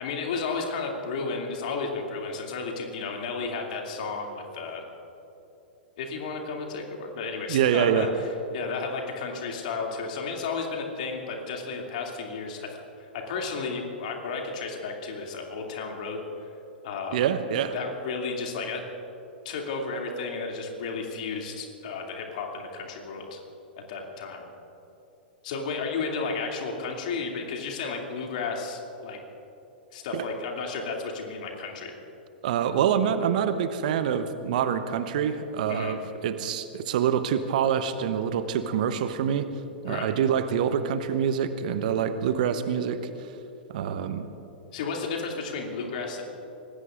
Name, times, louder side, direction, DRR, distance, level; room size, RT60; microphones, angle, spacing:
voice 1, 0.0-4.8 6.0-8.1 8.5-16.2 16.8-17.2 17.7-18.9 19.4-23.4 23.9-24.4 25.4-29.2 29.9-31.9 35.7-36.0 39.9-40.1 44.7-46.2, left 4 dB, 50° left, 1 dB, 2.6 m, -33 dB
voice 2, 7.5-8.1 17.1-17.7 30.1-30.3 32.4-39.5 39.8-43.3 43.7-44.3, right 8 dB, 50° right, 11 dB, 0.9 m, -26 dB
26.0 x 19.0 x 2.5 m, 3.0 s
figure-of-eight pair, 100°, 5 cm